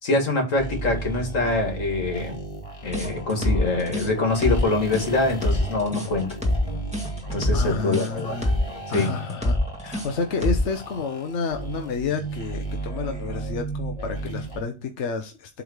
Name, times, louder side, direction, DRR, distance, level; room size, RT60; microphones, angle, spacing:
voice 1, 0.0-2.4 2.8-6.3 7.3-8.4 8.9-9.1, left 2 dB, 90° left, 3 dB, 2.4 m, -24 dB
sound 1, 0.6-14.6, right 3 dB, 25° left, 1.8 m, -35 dB
sound 2, 2.9-10.8, left 1 dB, 5° right, 1.8 m, -25 dB
voice 2, 7.5-8.6 8.9-15.6, left 5 dB, 65° left, 5 dB, 1.2 m, -30 dB
8.0 x 3.7 x 6.4 m, 0.30 s
omnidirectional pair, 1.3 m